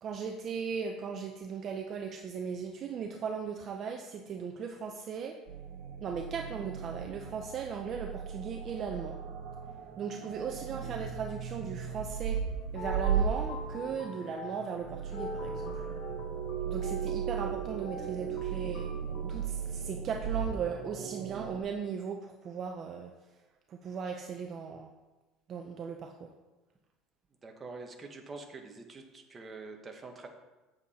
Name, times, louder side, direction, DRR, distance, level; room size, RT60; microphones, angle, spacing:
voice 1, 0.0-5.4 6.0-9.2 10.0-12.4 12.7-15.9 16.7-18.9 19.3-23.1 23.7-24.9 25.5-26.3, right 6 dB, 35° right, 3 dB, 0.6 m, -37 dB
sound 1, 5.5-21.6, right 7 dB, 70° right, 1.0 m, -36 dB
sound 2, 12.5-19.4, left 3 dB, 65° left, 2.5 m, -44 dB
voice 2, 27.4-30.3, right 3 dB, 20° right, 3 dB, 1.0 m, -45 dB
7.9 x 7.5 x 4.2 m, 1.1 s
cardioid pair, 150°, 0 cm